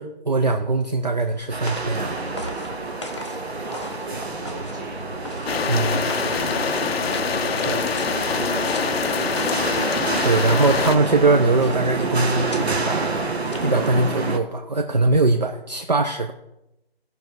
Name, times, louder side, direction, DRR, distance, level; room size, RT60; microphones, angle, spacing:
voice 1, 0.0-2.1 5.7-6.0 7.7-7.8 10.2-13.3 13.6-16.3, right 3 dB, 45° right, 5 dB, 0.6 m, -21 dB
sound 1, 0.8-14.1, left 2 dB, 30° left, 0.8 m, -41 dB
sound 2, 1.5-14.4, right 3 dB, 85° right, 1.5 m, -28 dB
voice 2, 3.6-5.0 6.0-7.0 7.3-9.6, right 2 dB, 20° right, -3 dB, 1.8 m, -40 dB
sound 3, 5.5-11.0, left 6 dB, 75° left, 0.5 m, -25 dB
15.5 x 5.4 x 4.5 m, 0.89 s
figure-of-eight pair, 175°, 31 cm